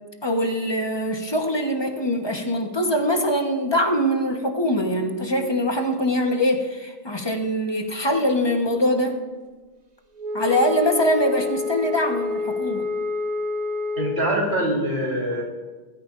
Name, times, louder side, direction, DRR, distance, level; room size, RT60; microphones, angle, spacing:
voice 1, 0.2-9.2 10.3-12.9, equal, 25° left, 3 dB, 1.2 m, -23 dB
Wind instrument woodwind instrument, 10.2-14.3, left 3 dB, 45° right, 1.1 m, -28 dB
voice 2, 14.0-15.4, right 1 dB, 90° right, -3 dB, 3.8 m, -24 dB
21.0 x 13.0 x 2.6 m, 1.3 s
omnidirectional pair, 1.0 m